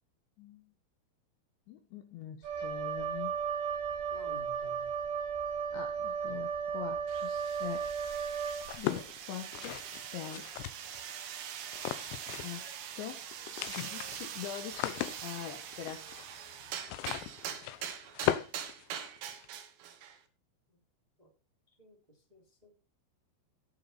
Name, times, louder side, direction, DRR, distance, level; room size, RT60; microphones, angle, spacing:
voice 1, 0.4-0.7 1.7-3.3 5.7-7.8 8.4-10.5 12.4-12.6 12.9-13.3 13.7-16.1, left 11 dB, 70° left, 6 dB, 3.1 m, -43 dB
Wind instrument woodwind instrument, 2.4-9.0, right 6 dB, 90° right, 8.3 m, -35 dB
voice 2, 4.1-4.9 21.2-21.3 21.8-22.0 22.3-22.8, left 1 dB, 10° right, 0 dB, 2.3 m, -53 dB
sound 1, 7.1-20.2, right 9 dB, 70° right, 2.3 m, -43 dB
sound 2, 8.6-11.1 11.7-12.7 12.9-13.0 13.3-19.5, left 14 dB, 90° left, 3.6 m, -38 dB
18.0 x 6.4 x 4.2 m, 0.32 s
omnidirectional pair, 5.9 m